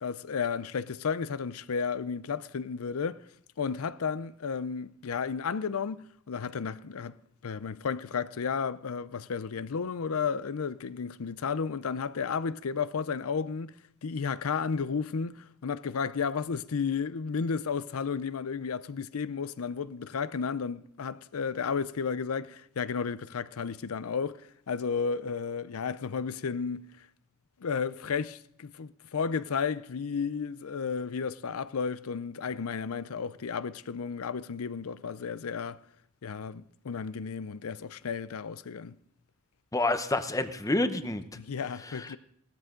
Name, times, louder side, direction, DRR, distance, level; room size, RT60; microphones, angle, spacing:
voice 1, 0.0-3.2 3.6-7.1 7.4-13.7 14.0-26.8 27.6-35.8 36.2-38.9 41.4-42.2, left 6 dB, 85° left, 0.5 m, -33 dB
voice 2, 39.7-41.2 41.9-42.2, left 2 dB, 15° left, 0.8 m, -28 dB
17.5 x 13.5 x 3.8 m
head